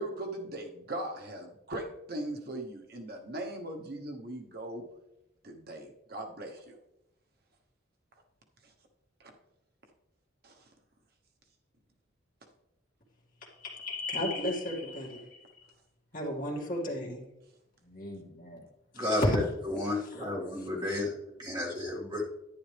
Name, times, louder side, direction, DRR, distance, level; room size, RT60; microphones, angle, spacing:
voice 1, 0.0-4.8 5.4-6.7 10.4-10.5, right 1 dB, 50° right, 3 dB, 1.0 m, -39 dB
voice 2, 13.4-15.7 16.1-17.2 17.8-18.7 18.9-19.4 19.8-20.3 20.6-21.0, left 1 dB, 45° left, -1 dB, 2.2 m, -35 dB
voice 3, 18.9-19.4 19.7-22.3, left 2 dB, 25° right, -3 dB, 2.2 m, -32 dB
10.5 x 10.0 x 3.4 m, 0.89 s
head